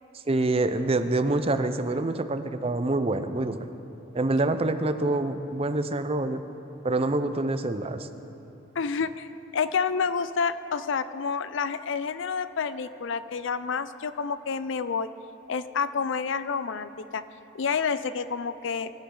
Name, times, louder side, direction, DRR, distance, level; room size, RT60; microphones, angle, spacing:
voice 1, 0.3-3.7 4.1-6.4 6.8-8.1, right 2 dB, 30° right, 10 dB, 0.6 m, -26 dB
voice 2, 8.8-15.1 15.5-17.2 17.5-19.0, left 5 dB, 65° left, 13 dB, 0.5 m, -29 dB
23.0 x 11.5 x 3.8 m, 2.9 s
head